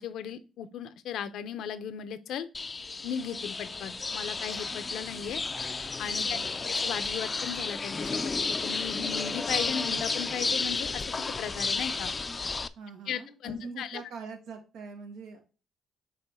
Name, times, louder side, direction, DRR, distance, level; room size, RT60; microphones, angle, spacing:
voice 1, 0.0-2.5 3.0-5.4 6.0-6.4 6.6-12.1 13.1-14.0, left 8 dB, 80° left, 12 dB, 0.7 m, -37 dB
sound 1, 2.5-12.7, left 4 dB, 30° left, 0.4 m, -32 dB
voice 2, 6.2-6.6 12.8-15.4, right 5 dB, 85° right, 3 dB, 1.7 m, -43 dB
7.1 x 3.1 x 4.4 m, 0.32 s
cardioid pair, 90°, 0 cm